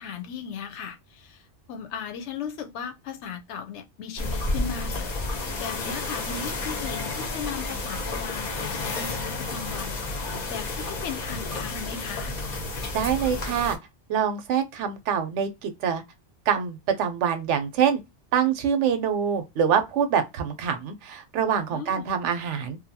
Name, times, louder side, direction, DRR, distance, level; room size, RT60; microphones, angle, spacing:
voice 1, 0.0-5.1 5.6-10.0 10.5-12.3 21.7-22.1, left 7 dB, 75° left, 0.8 m, -37 dB
sound 1, 4.2-13.8, left 2 dB, 45° left, 0.6 m, -31 dB
voice 2, 12.9-13.8 14.1-16.0 16.5-18.0 18.3-22.8, right 8 dB, 85° right, 0.9 m, -25 dB
2.6 x 2.2 x 2.6 m
omnidirectional pair, 1.2 m